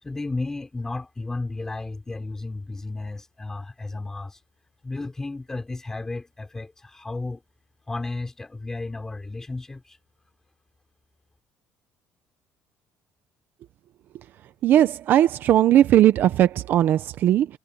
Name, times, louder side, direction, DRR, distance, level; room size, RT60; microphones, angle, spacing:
voice 1, 0.0-4.4 4.8-7.4 7.9-10.0, left 2 dB, 10° left, 5.8 m, -33 dB
voice 2, 14.6-17.5, right 12 dB, 50° right, 0.7 m, -18 dB
cardioid pair, 175°, 4 cm